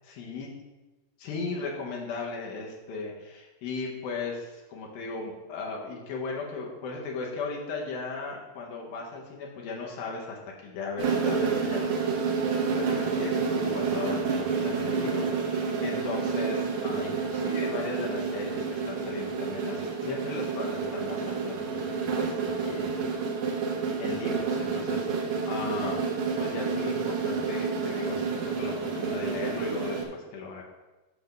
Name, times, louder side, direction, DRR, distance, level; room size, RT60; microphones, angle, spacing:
voice 1, 0.0-0.5 1.2-12.0 12.7-23.1 24.0-26.0 26.4-28.3 28.6-30.6, left 4 dB, 70° left, -2 dB, 2.5 m, -37 dB
sound 1, 11.0-30.1, right 5 dB, 85° right, 1.6 m, -29 dB
8.1 x 3.4 x 6.5 m, 1.1 s
omnidirectional pair, 4.6 m